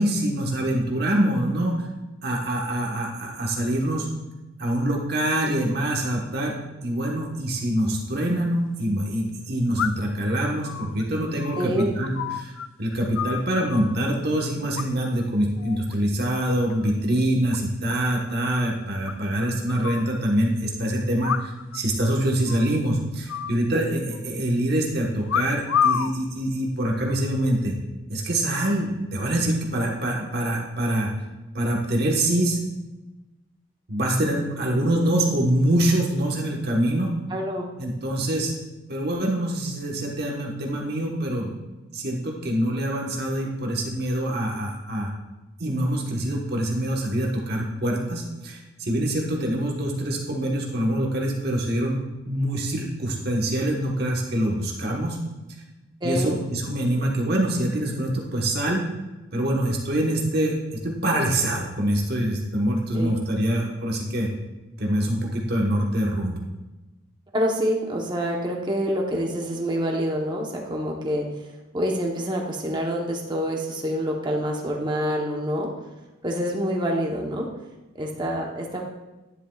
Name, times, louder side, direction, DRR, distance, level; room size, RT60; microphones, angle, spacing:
voice 1, 0.0-1.8 2.2-4.1 4.6-12.5 12.8-27.8 28.1-31.1 31.5-32.6 33.9-37.1 37.8-38.5 38.9-41.5 41.9-45.1 45.6-55.2 56.0-58.8 59.3-60.6 60.8-64.3 64.8-66.4, right 1 dB, 50° right, -1 dB, 1.3 m, -25 dB
sound 1, 8.0-8.1 9.8-10.2 10.6-12.7 12.9-14.0 14.7-15.3 15.6-15.9 16.3-16.9 17.2-17.3 17.5-17.6 17.9-18.0 18.3-18.4 19.1-20.1 21.2-21.8 22.1-22.2 22.5-22.8 23.3-24.2 25.3-26.1 26.9-27.3, left 8 dB, 80° left, 0.4 m, -29 dB
voice 2, 11.6-12.0 37.3-37.7 56.0-56.4 62.9-63.1 67.3-71.2 71.7-75.7 76.2-77.5 77.9-78.8, equal, 20° right, 0 dB, 1.0 m, -26 dB
11.0 x 10.0 x 2.4 m, 1.1 s
head